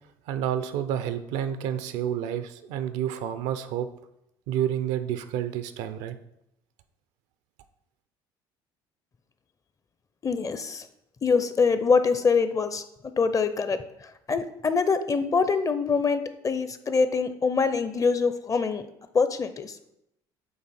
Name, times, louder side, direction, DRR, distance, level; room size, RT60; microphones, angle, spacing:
voice 1, 0.3-3.9 4.5-6.2, right 10 dB, 75° right, 11 dB, 0.5 m, -29 dB
voice 2, 10.2-10.9 11.2-12.8 13.2-18.9 19.1-19.8, left 5 dB, 30° left, 11 dB, 0.5 m, -24 dB
8.0 x 2.8 x 4.2 m, 0.82 s
supercardioid pair, 75°, 12 cm